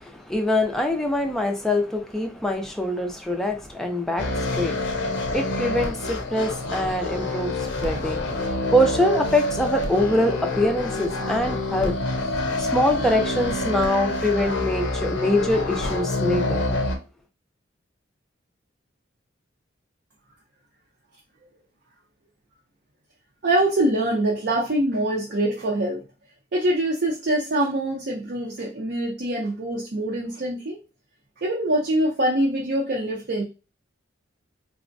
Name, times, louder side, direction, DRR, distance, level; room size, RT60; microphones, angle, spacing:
voice 1, 0.0-8.3 8.7-11.9 12.6-16.6, left 1 dB, ahead, 0.4 m, -24 dB
sound 1, 4.2-17.0, left 2 dB, 70° left, 0.5 m, -27 dB
voice 2, 23.4-26.0 26.5-30.8 31.4-33.4, right 1 dB, 55° right, 0.5 m, -24 dB
3.4 x 2.1 x 2.5 m
head